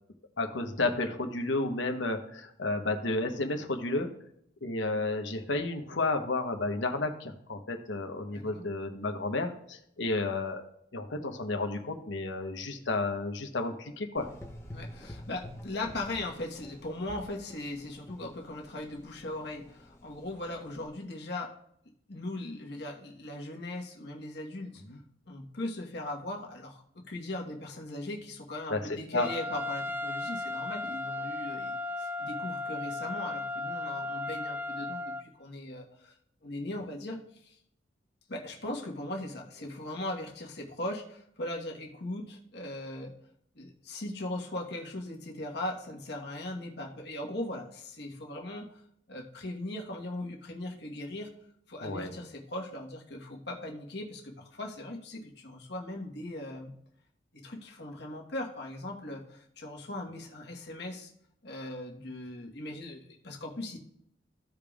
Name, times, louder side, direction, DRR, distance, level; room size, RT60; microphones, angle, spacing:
voice 1, 0.4-4.1 4.6-14.3 24.9-25.0 28.7-29.3 51.8-52.1, left 2 dB, 75° left, 5 dB, 1.0 m, -32 dB
voice 2, 8.3-8.6 14.7-21.5 22.1-24.8 25.3-36.1 36.4-37.5 38.3-43.1 43.5-48.8 49.1-51.3 51.7-56.7 57.3-61.1 61.4-63.8, left 1 dB, 60° left, 0 dB, 1.3 m, -39 dB
Gurgling / Engine, 14.2-20.9, left 1 dB, 15° left, 0.8 m, -49 dB
Trumpet, 29.2-35.2, left 2 dB, 10° right, 0.4 m, -35 dB
15.0 x 5.1 x 2.4 m, 0.71 s
head